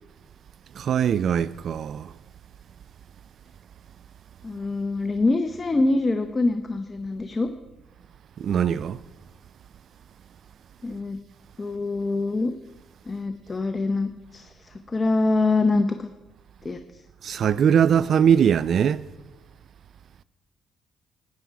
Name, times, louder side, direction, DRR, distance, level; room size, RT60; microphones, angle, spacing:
voice 1, 0.7-2.1 8.4-9.0 17.2-19.0, right 8 dB, 60° right, 0.3 m, -21 dB
voice 2, 4.4-7.5 10.8-11.2 11.6-12.5 13.1-16.1 16.6-17.0, left 3 dB, 25° left, 0.7 m, -25 dB
13.0 x 9.5 x 4.7 m
cardioid pair, 90°, 0 cm